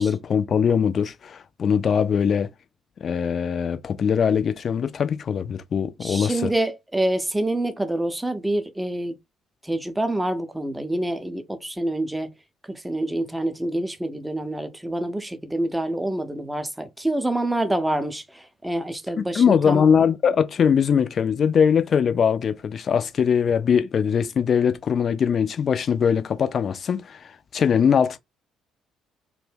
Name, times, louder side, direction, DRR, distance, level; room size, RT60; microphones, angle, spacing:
voice 1, 0.0-2.5 3.0-6.5 19.2-28.2, left 7 dB, 45° left, 0.3 m, -21 dB
voice 2, 6.0-9.2 9.6-12.3 12.6-19.9, right 1 dB, 10° right, 0.5 m, -27 dB
2.6 x 2.1 x 3.3 m
figure-of-eight pair, 45°, 0 cm